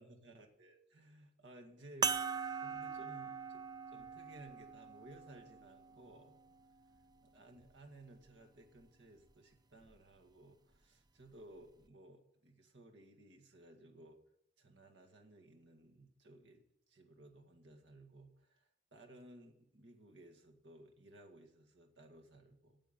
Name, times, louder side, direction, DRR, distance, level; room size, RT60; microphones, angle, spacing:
voice 1, 0.0-2.2 2.6-6.4 7.2-14.2 14.6-22.8, right 1 dB, 75° right, 3 dB, 1.9 m, -58 dB
sound 1, 2.0-6.8 7.6-7.7 9.8-10.0, right 5 dB, 20° right, 0.5 m, -41 dB
9.3 x 7.7 x 9.1 m, 0.77 s
head